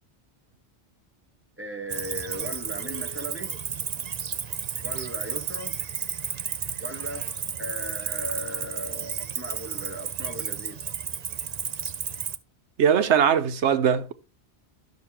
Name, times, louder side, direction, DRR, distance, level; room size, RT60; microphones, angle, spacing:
voice 1, 1.6-3.5 4.8-5.8 6.8-7.3 7.6-10.8, equal, 10° right, 1.2 m, -37 dB
Cricket, 1.9-12.4, right 7 dB, 45° right, 0.6 m, -32 dB
voice 2, 12.8-14.1, right 8 dB, 85° right, 1.1 m, -20 dB
12.0 x 6.4 x 2.8 m
omnidirectional pair, 1.1 m